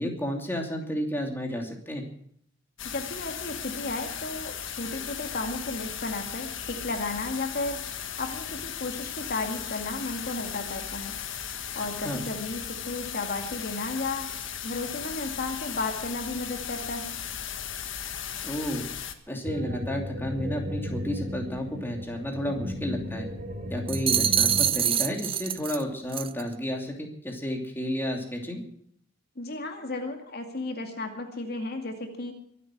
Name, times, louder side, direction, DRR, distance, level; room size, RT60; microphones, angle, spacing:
voice 1, 0.0-2.0 12.0-12.2 18.4-18.9 19.3-23.3 23.7-28.6, equal, 10° left, 1 dB, 2.8 m, -31 dB
sound 1, 2.8-19.1, left 9 dB, 70° left, 1.5 m, -36 dB
voice 2, 2.8-7.8 8.2-11.1 11.7-14.3 14.6-17.2 29.4-32.3, left 2 dB, 55° left, 4 dB, 2.2 m, -34 dB
sound 2, 19.4-24.7, left 1 dB, 45° right, 3.4 m, -35 dB
sound 3, 23.9-25.8 26.1-26.4, right 9 dB, 30° right, 0.5 m, -25 dB
23.5 x 8.4 x 6.1 m, 0.67 s
head